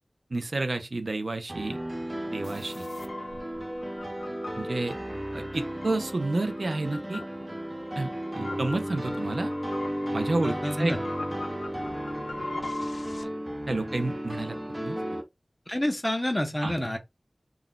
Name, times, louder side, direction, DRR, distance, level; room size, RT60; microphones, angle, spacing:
voice 1, 0.3-1.8 2.3-2.9 4.6-5.0 5.3-7.2 8.0-9.5 10.1-10.9 13.7-14.6 14.8-15.2 16.6-17.0, right 2 dB, 85° right, 0.4 m, -30 dB
sound 1, 1.5-15.2, equal, 25° right, 0.7 m, -34 dB
sound 2, 2.4-13.2, left 2 dB, 85° left, 0.5 m, -42 dB
voice 2, 10.4-11.0 15.7-17.0, left 1 dB, 25° left, 0.6 m, -28 dB
2.3 x 2.2 x 3.7 m
wide cardioid pair, 45°, 0 cm